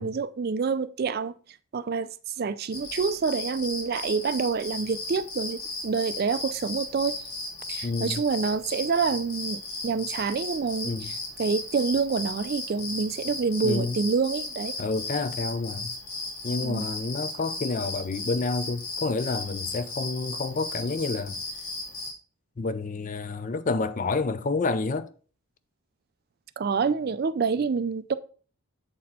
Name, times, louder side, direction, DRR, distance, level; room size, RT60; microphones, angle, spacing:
voice 1, 0.0-1.3 1.7-2.1 2.4-7.2 7.7-14.7 16.6-16.9 26.6-28.1, right 5 dB, 45° right, 0.3 m, -27 dB
sound 1, 2.7-22.1, left 2 dB, 70° left, 1.9 m, -36 dB
voice 2, 7.8-8.2 10.8-11.1 13.6-14.0 14.8-15.9 16.4-21.4 22.6-25.1, left 3 dB, 35° left, 0.4 m, -29 dB
7.5 x 4.2 x 4.2 m
head